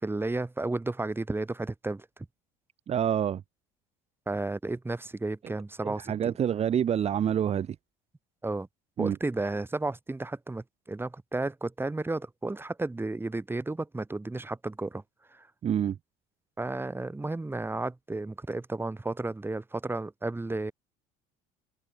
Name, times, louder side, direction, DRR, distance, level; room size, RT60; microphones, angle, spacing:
voice 1, 0.0-2.1 4.3-6.3 8.4-8.7 9.0-15.0 15.3-15.4 16.6-20.7, right 2 dB, 10° right, 4.0 m, -33 dB
voice 2, 2.9-3.4 5.8-7.8 9.0-9.2 15.6-16.0, right 9 dB, 35° right, 0.8 m, -27 dB
supercardioid pair, 95°, 18 cm